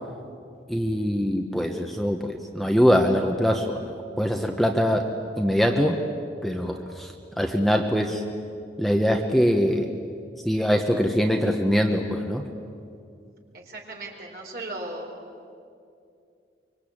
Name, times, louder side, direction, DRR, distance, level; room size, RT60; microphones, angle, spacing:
voice 1, 0.7-3.9 4.2-5.0 5.4-6.0 6.4-7.1 7.4-8.2 8.8-9.9 10.4-12.4, equal, ahead, 3 dB, 1.1 m, -23 dB
voice 2, 13.5-15.1, right 2 dB, 55° right, 1 dB, 4.4 m, -36 dB
25.0 x 24.0 x 8.7 m, 2.5 s
head